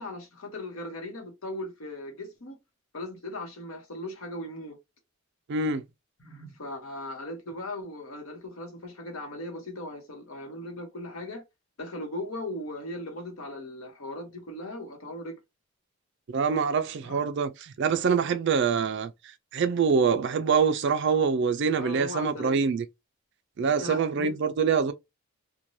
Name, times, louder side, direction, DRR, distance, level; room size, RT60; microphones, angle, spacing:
voice 1, 0.0-2.6 2.9-4.8 6.2-11.4 11.8-15.4 17.0-17.2 21.8-22.6 23.8-24.4, left 1 dB, 70° left, 0.9 m, -38 dB
voice 2, 5.5-5.8 16.3-19.1 19.5-22.8 23.6-24.9, right 5 dB, 50° right, 0.3 m, -25 dB
3.1 x 2.2 x 2.6 m
head